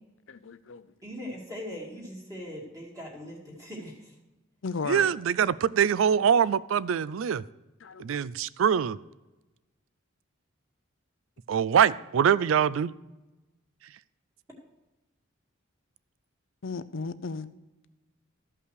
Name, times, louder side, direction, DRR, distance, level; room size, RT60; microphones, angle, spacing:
voice 1, 0.3-0.9 4.6-5.1 7.8-8.2 16.6-17.5, left 4 dB, 70° left, 0.6 m, -35 dB
voice 2, 1.0-4.1, equal, 15° right, 2.2 m, -40 dB
voice 3, 4.9-7.4 8.0-9.0 11.5-12.9, right 8 dB, 75° right, 0.4 m, -24 dB
13.5 x 5.6 x 6.4 m
head